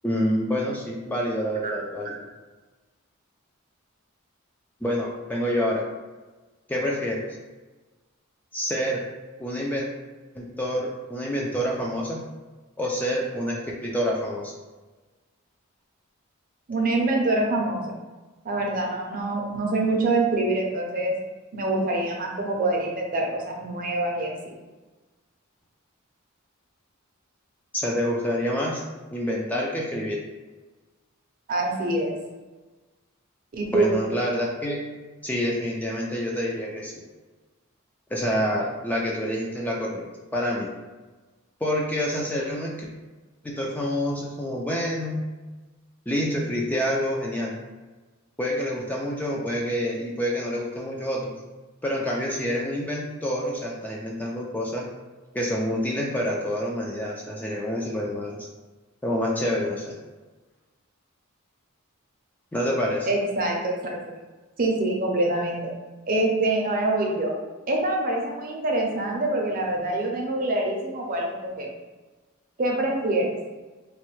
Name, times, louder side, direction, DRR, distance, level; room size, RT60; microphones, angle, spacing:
voice 1, 0.0-2.2 4.8-5.8 6.7-7.3 8.5-9.0 9.4-9.9 10.3-12.2 12.8-14.5 27.7-28.8 29.1-30.2 33.7-34.8 35.2-37.0 38.1-40.0 40.3-40.7 41.6-42.9 43.4-45.2 46.1-47.5 48.4-51.3 51.8-54.9 55.3-58.4 59.0-59.9 62.5-63.1, equal, 10° left, -3 dB, 0.3 m, -27 dB
voice 2, 16.7-18.0 18.4-21.1 21.5-24.5 31.5-32.1 33.5-33.9 63.0-64.0 64.6-65.7 66.1-67.3 67.7-71.7 72.6-73.4, right 2 dB, 40° right, 0 dB, 0.6 m, -25 dB
3.1 x 2.1 x 3.0 m, 1.2 s
head